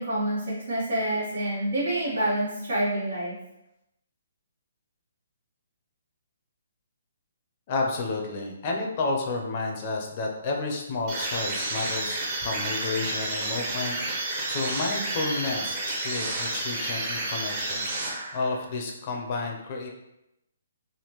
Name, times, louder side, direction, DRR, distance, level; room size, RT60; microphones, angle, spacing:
voice 1, 0.0-3.3, right 1 dB, 85° right, -8 dB, 1.4 m, -27 dB
voice 2, 7.7-19.9, left 3 dB, 40° left, 1 dB, 0.6 m, -31 dB
sound 1, 11.1-18.6, right 2 dB, 30° right, 0.8 m, -30 dB
3.5 x 2.2 x 3.0 m, 0.86 s
hypercardioid pair, 150°, 0 cm